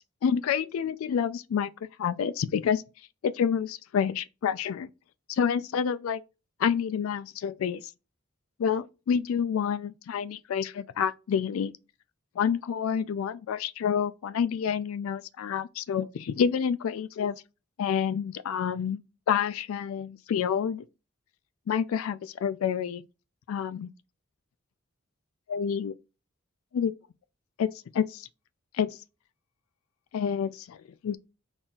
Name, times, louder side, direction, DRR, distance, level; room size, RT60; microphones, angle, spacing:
voice 1, 0.2-1.7 2.0-2.8 3.2-4.9 5.3-6.2 6.6-7.8 8.6-11.7 12.4-17.4 17.8-19.0 19.3-20.8 21.7-23.0 23.5-23.9 25.5-25.9 26.7-26.9 27.6-27.7 27.9-28.3 28.7-28.9 30.1-31.2, left 7 dB, 80° left, 0.3 m, -28 dB
4.0 x 2.3 x 3.8 m
head